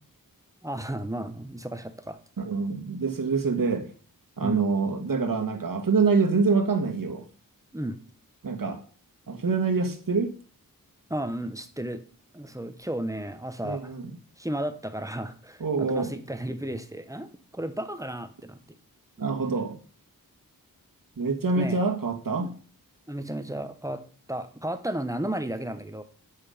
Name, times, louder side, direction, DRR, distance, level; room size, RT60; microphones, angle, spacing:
voice 1, 0.6-2.2 4.4-4.6 7.7-8.0 11.1-12.0 12.3-13.9 14.4-18.6 21.6-21.8 22.4-22.5 23.1-24.0 24.3-26.0, right 1 dB, 10° right, 9 dB, 1.1 m, -33 dB
voice 2, 2.4-3.9 4.4-7.2 8.4-8.8 9.3-10.3 13.6-14.1 15.6-16.1 19.2-19.8 21.2-22.5, right 4 dB, 65° right, 5 dB, 1.7 m, -25 dB
9.4 x 8.0 x 5.1 m, 0.41 s
wide cardioid pair, 95°, 36 cm